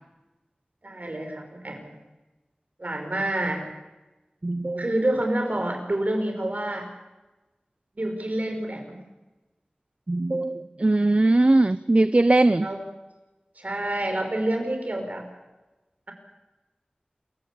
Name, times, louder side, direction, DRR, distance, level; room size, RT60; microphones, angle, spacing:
voice 1, 0.8-1.9 2.8-3.6 4.8-6.9 8.0-9.0 12.6-12.8 13.6-15.3, right 1 dB, 60° right, 5 dB, 5.5 m, -28 dB
voice 2, 4.4-4.9 10.1-12.7, right 2 dB, 45° right, 14 dB, 0.7 m, -20 dB
27.5 x 15.5 x 8.7 m, 1.1 s
wide cardioid pair, 50°, 3 cm